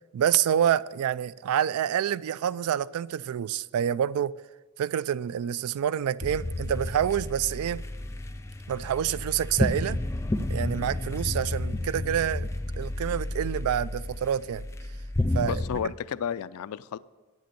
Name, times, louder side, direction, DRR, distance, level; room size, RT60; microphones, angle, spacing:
voice 1, 0.1-4.3 4.8-7.8 8.7-10.0 10.5-12.5 12.8-14.7 15.3-15.6, right 9 dB, 80° right, 0.3 m, -27 dB
sound 1, 6.2-15.8, left 1 dB, 15° left, 0.4 m, -31 dB
voice 2, 15.4-17.0, left 8 dB, 80° left, 0.4 m, -32 dB
9.0 x 7.8 x 6.7 m
head